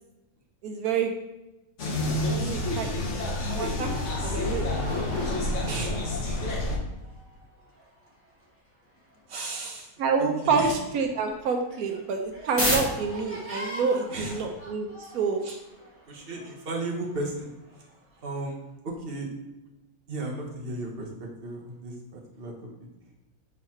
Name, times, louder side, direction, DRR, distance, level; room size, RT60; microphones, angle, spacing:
voice 1, 0.6-1.1 2.4-3.9 4.2-5.5 10.0-15.4, right 5 dB, 80° right, 3 dB, 1.1 m, -28 dB
sound 1, 1.8-6.8, left 2 dB, 55° left, 1.3 m, -28 dB
sound 2, 3.0-9.7 10.0-10.1 10.4-18.6, equal, 10° left, 1.9 m, -38 dB
voice 2, 5.6-6.1 9.3-9.9 10.2-10.7 14.1-14.4 15.4-15.6 16.1-17.5 18.2-18.5 18.8-19.3 20.1-22.5, right 2 dB, 40° right, 0 dB, 1.2 m, -34 dB
6.1 x 4.0 x 4.3 m, 0.99 s
omnidirectional pair, 1.6 m